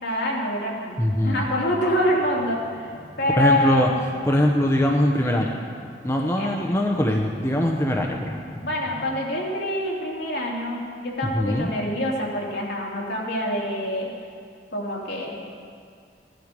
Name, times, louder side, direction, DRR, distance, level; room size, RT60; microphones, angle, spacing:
voice 1, 0.0-3.9 6.4-6.6 8.6-14.1 14.7-15.5, left 1 dB, 65° left, -3 dB, 2.9 m, -26 dB
voice 2, 1.0-1.4 3.4-3.9 4.3-5.6 6.0-8.4 11.3-11.7, left 1 dB, 15° left, 1 dB, 0.8 m, -22 dB
sound 1, 2.0-9.0, equal, 20° right, 2.3 m, -45 dB
16.5 x 11.5 x 5.2 m, 2.2 s
head